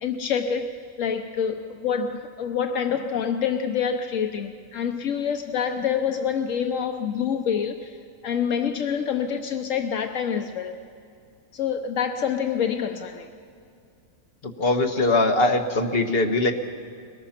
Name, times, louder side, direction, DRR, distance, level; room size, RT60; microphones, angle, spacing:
voice 1, 0.0-8.0 8.2-10.8 11.5-13.3, left 7 dB, 80° left, 6 dB, 1.2 m, -27 dB
voice 2, 14.4-16.5, left 2 dB, 50° left, 4 dB, 1.6 m, -21 dB
22.5 x 19.5 x 5.9 m, 2.4 s
omnidirectional pair, 1.3 m